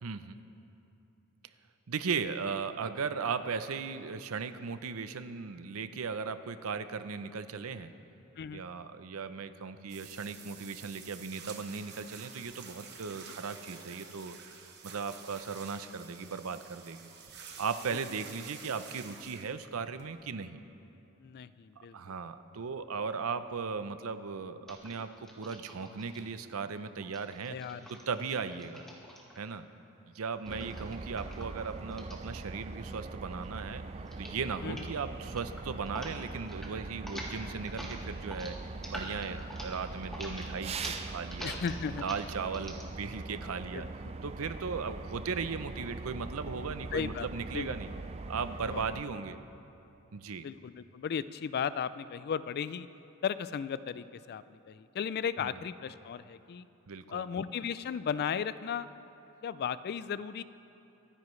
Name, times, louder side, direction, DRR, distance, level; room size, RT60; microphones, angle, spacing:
voice 1, 0.0-0.4 1.9-7.9 8.5-14.4 14.8-17.1 17.6-20.6 21.9-27.6 27.9-28.8 29.4-29.7 30.1-33.8 34.2-38.6 38.9-41.6 42.0-43.9 44.2-47.9 48.3-49.4 50.1-50.5 55.4-55.5 56.9-57.2, right 5 dB, 70° right, 11 dB, 0.6 m, -37 dB
sound 1, 9.9-20.3, right 6 dB, 50° right, 1.1 m, -49 dB
voice 2, 21.2-22.0 27.5-27.9 30.6-30.7 34.6-34.9 41.4-42.1 43.7-43.9 46.9-47.3 47.5-47.7 48.7-48.8 50.4-52.9 53.2-56.7 57.1-58.9 59.4-60.4, left 7 dB, 45° left, 15 dB, 0.3 m, -35 dB
sound 2, 24.7-26.2 27.0-29.5 30.5-33.0 33.2-33.6 34.0-34.4 34.7-34.9 35.2-36.1 36.4-36.7 37.0-42.8, equal, ahead, 1.5 m, -46 dB
sound 3, 30.4-49.0, right 3 dB, 30° right, 0.4 m, -42 dB
25.0 x 9.7 x 3.2 m, 2.8 s
head